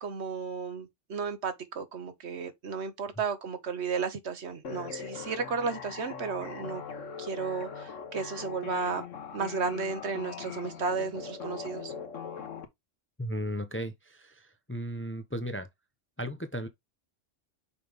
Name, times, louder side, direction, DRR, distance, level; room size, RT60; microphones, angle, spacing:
voice 1, 0.0-6.8 7.2-9.0 9.3-11.9, right 5 dB, 65° right, 1.2 m, -33 dB
sound 1, 4.6-12.6, left 6 dB, 85° left, 1.5 m, -41 dB
voice 2, 13.2-15.7 16.2-16.7, equal, 10° left, 0.7 m, -35 dB
6.1 x 5.1 x 3.5 m
omnidirectional pair, 1.3 m